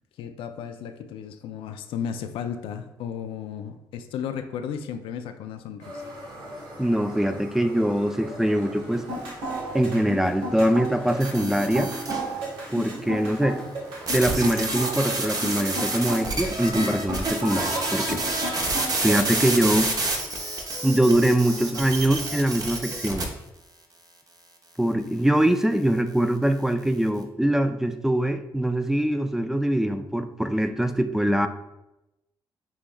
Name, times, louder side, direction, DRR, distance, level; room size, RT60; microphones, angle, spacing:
voice 1, 0.2-6.0, left 8 dB, 85° left, 8 dB, 0.4 m, -34 dB
Pava calentando, 5.8-18.8, equal, 70° right, 1.5 m, -44 dB
voice 2, 6.8-9.1 9.7-11.9 12.7-13.6 14.1-18.2 19.0-19.9 20.8-23.3 24.8-31.5, right 1 dB, 5° right, 8 dB, 0.4 m, -23 dB
sound 1, 8.9-19.5, right 1 dB, 85° right, 1.3 m, -33 dB
sound 2, 11.2-12.3 14.1-23.2, right 2 dB, 45° right, 0.9 m, -29 dB
7.0 x 3.1 x 2.2 m, 0.92 s
supercardioid pair, 65°, 9 cm